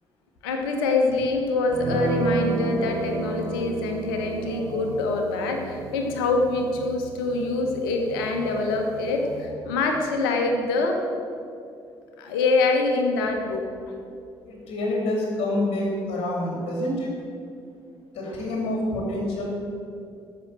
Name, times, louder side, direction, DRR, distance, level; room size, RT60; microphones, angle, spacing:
voice 1, 0.4-11.0 12.2-13.7, left 3 dB, 70° left, 3 dB, 1.5 m, -25 dB
sound 1, 1.7-9.5, right 2 dB, 55° right, 1.8 m, -33 dB
sound 2, 4.3-9.8, right 2 dB, 80° right, 3.2 m, -42 dB
voice 2, 14.4-17.1 18.1-19.5, left 1 dB, 55° left, -2 dB, 3.4 m, -27 dB
14.0 x 6.8 x 7.7 m, 2.5 s
figure-of-eight pair, 45°, 12 cm